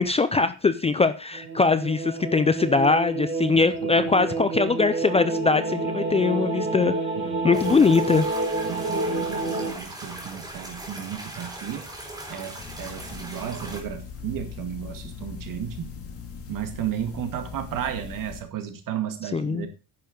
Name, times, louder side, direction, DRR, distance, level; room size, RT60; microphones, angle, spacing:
voice 1, 0.0-6.9 7.4-8.3 19.3-19.7, left 4 dB, 15° left, 12 dB, 0.4 m, -22 dB
sound 1, 1.3-9.7, right 3 dB, 30° right, 2.7 m, -28 dB
voice 2, 3.4-4.3 7.2-7.9 8.6-11.9 12.3-15.9 16.5-19.7, right 10 dB, 60° right, 6 dB, 2.2 m, -34 dB
sound 2, 7.5-13.8, right 1 dB, 10° right, 4.2 m, -39 dB
sound 3, 12.6-18.4, left 6 dB, 40° left, 2.5 m, -40 dB
10.5 x 6.9 x 5.1 m, 0.33 s
cardioid pair, 160°, 37 cm